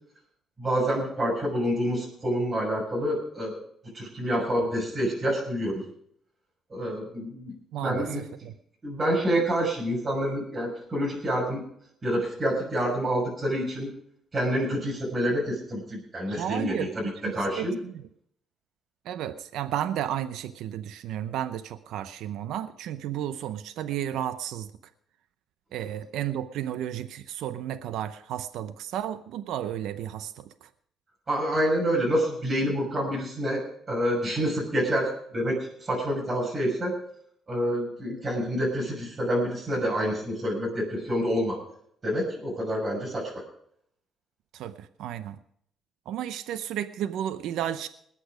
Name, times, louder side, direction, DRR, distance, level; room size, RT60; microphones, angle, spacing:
voice 1, 0.6-3.6 3.9-5.8 6.7-7.5 7.8-8.2 8.8-11.6 12.0-13.9 14.3-17.8 31.3-36.9 37.5-41.6 42.0-43.4, equal, 30° right, -4 dB, 6.5 m, -27 dB
voice 2, 7.7-8.5 16.3-17.9 19.1-24.7 25.7-30.7 44.5-45.4 46.1-47.9, right 11 dB, 85° right, 12 dB, 0.7 m, -33 dB
20.0 x 8.6 x 5.0 m, 0.68 s
cardioid pair, 90°, 0 cm